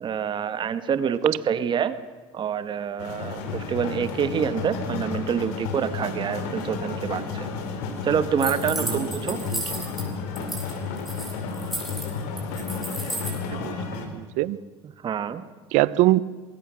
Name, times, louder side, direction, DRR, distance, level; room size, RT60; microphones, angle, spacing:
voice 1, 0.0-2.0 2.3-7.5 8.0-9.4 15.0-15.4, right 7 dB, 40° right, 12 dB, 1.5 m, -26 dB
sound 1, 3.0-14.1, left 4 dB, 80° left, 3.7 m, -32 dB
sound 2, 8.4-10.0 10.3-10.7 11.0-13.4, right 1 dB, ahead, 7.6 m, -33 dB
voice 2, 13.5-14.6 15.7-16.2, right 18 dB, 75° right, 19 dB, 0.8 m, -23 dB
24.0 x 21.5 x 6.4 m, 1.4 s
supercardioid pair, 100°, 12 cm